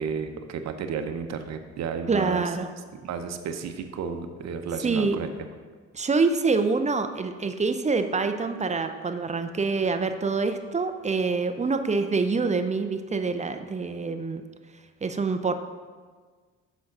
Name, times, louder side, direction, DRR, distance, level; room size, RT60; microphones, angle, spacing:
voice 1, 0.0-2.4 3.0-5.3, right 6 dB, 60° right, 7 dB, 0.8 m, -32 dB
voice 2, 2.1-2.7 4.8-5.2 5.9-14.4 15.0-15.5, right 4 dB, 25° right, 8 dB, 0.5 m, -26 dB
6.2 x 5.5 x 5.9 m, 1.5 s
cardioid pair, 90°, 30 cm